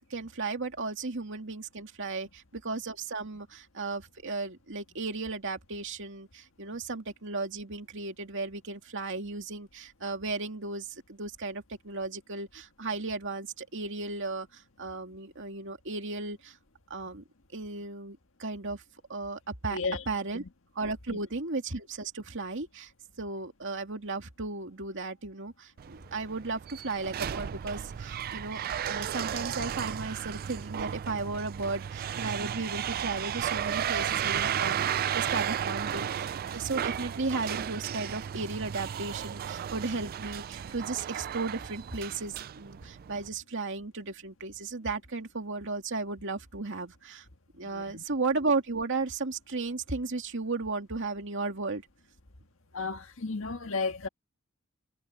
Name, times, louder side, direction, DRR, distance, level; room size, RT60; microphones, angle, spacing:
voice 1, 0.1-14.5 14.8-16.5 16.9-17.2 17.5-18.8 19.1-19.8 20.1-20.4 20.8-22.9 23.2-36.3 36.5-47.2 47.6-51.8, right 3 dB, 60° right, 2.4 m, -35 dB
voice 2, 19.7-20.1 21.1-21.2 47.6-48.0 52.7-54.1, left 4 dB, 70° left, 1.7 m, -33 dB
sound 1, 25.8-43.3, right 9 dB, 45° right, 0.3 m, -34 dB
head